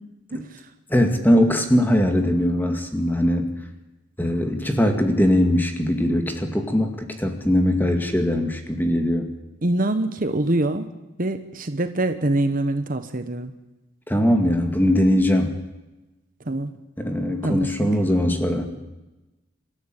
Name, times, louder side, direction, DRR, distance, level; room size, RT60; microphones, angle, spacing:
voice 1, 0.3-0.6 9.6-10.9 11.2-13.5 16.5-16.7 17.4-17.7, right 1 dB, 40° right, 9 dB, 1.0 m, -24 dB
voice 2, 0.9-3.5 4.2-9.3 14.1-15.6 17.0-18.7, left 1 dB, 10° left, 5 dB, 2.2 m, -21 dB
26.5 x 13.5 x 9.1 m, 1.1 s
head